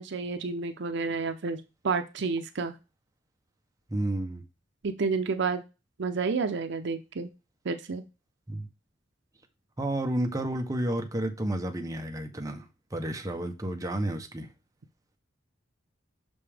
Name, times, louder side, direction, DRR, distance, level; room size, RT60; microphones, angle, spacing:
voice 1, 0.0-2.7 4.8-5.6 6.0-7.3 7.6-8.0, right 4 dB, 65° right, 0.6 m, -30 dB
voice 2, 3.9-4.4 8.5-8.7 9.8-14.5, right 1 dB, 20° right, 0.8 m, -31 dB
5.9 x 5.2 x 3.4 m
head